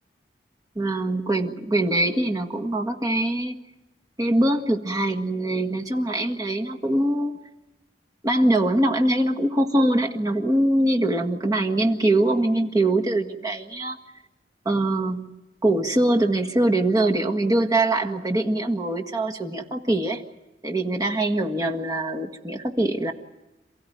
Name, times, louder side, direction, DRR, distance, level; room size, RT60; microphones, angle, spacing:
voice 1, 0.8-3.6 4.2-7.3 8.2-14.0 14.7-15.3 15.6-20.2 20.6-23.1, right 1 dB, 20° right, 2 dB, 1.7 m, -23 dB
28.5 x 16.0 x 9.4 m, 1.0 s
head